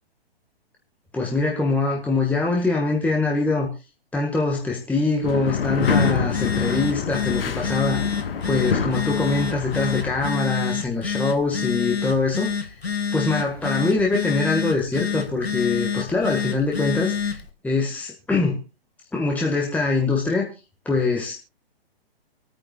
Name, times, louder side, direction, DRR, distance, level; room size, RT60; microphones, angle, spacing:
voice 1, 1.1-3.7 4.1-8.2 8.4-12.7 13.1-17.4 17.6-18.6 19.1-20.5 20.9-21.3, left 3 dB, 5° left, -1 dB, 1.7 m, -23 dB
sound 1, 5.2-10.3, left 6 dB, 65° left, 1.6 m, -26 dB
Telephone, 5.5-17.5, left 6 dB, 85° left, 1.6 m, -28 dB
27.5 x 9.2 x 2.4 m, 0.31 s
figure-of-eight pair, 120°, 31 cm